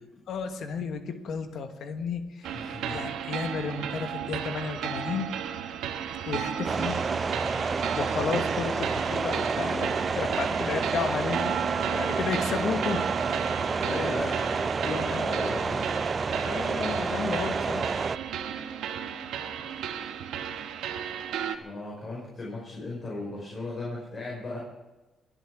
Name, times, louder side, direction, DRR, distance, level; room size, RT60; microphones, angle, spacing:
voice 1, 0.3-5.3 6.3-7.0 8.0-11.6 11.9-13.1 14.3-14.7 15.0-15.6 16.4-17.9, left 6 dB, 70° left, 7 dB, 1.3 m, -33 dB
sound 1, 2.4-21.6, right 9 dB, 85° right, 1.1 m, -34 dB
voice 2, 2.6-3.0 13.8-15.8 21.6-24.6, left 2 dB, 35° left, -4 dB, 5.4 m, -36 dB
sound 2, 6.6-18.2, right 4 dB, 35° right, 0.4 m, -29 dB
22.0 x 8.2 x 6.2 m, 1.1 s
cardioid pair, 90°, 0 cm